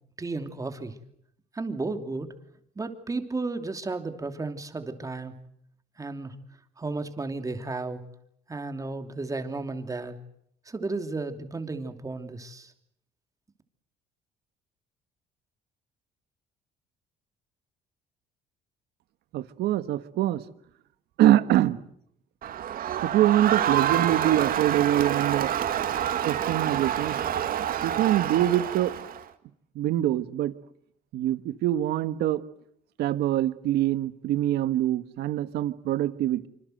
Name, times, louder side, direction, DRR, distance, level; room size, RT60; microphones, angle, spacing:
voice 1, 0.2-1.0 1.5-2.3 2.8-5.3 6.0-6.3 6.8-8.0 8.5-10.2 10.7-12.7, right 3 dB, 20° right, 7 dB, 2.9 m, -33 dB
voice 2, 19.3-20.4 21.2-21.8 23.0-25.5 26.2-27.2 27.8-28.9 29.7-30.5 31.1-32.4 33.0-36.5, right 13 dB, 80° right, 13 dB, 1.5 m, -24 dB
Crowd, 22.4-29.2, right 10 dB, 60° right, 1.9 m, -27 dB
26.0 x 25.5 x 7.9 m, 0.71 s
cardioid pair, 110°, 17 cm